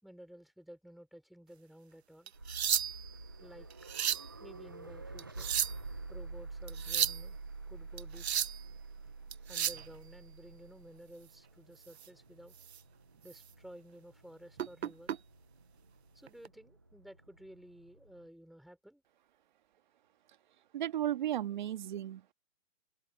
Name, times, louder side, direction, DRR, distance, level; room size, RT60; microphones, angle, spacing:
voice 1, 0.0-2.3 3.4-3.9 4.4-5.5 6.1-7.4 7.7-8.3 9.5-12.6 13.2-15.2 16.1-19.0, equal, ahead, 5.2 m, -54 dB
sound 1, 2.3-18.2, right 3 dB, 15° right, 0.5 m, -48 dB
sound 2, 2.3-3.2 3.7-4.3 5.2-5.9 6.7-7.2 8.0-8.6 9.3-9.9 11.9-12.1 12.6-12.8 13.3-13.4 14.6-15.2 16.3-16.5, right 9 dB, 55° right, 0.7 m, -33 dB
voice 2, 20.7-22.3, right 11 dB, 35° right, 1.8 m, -34 dB
hypercardioid pair, 170°, 40 cm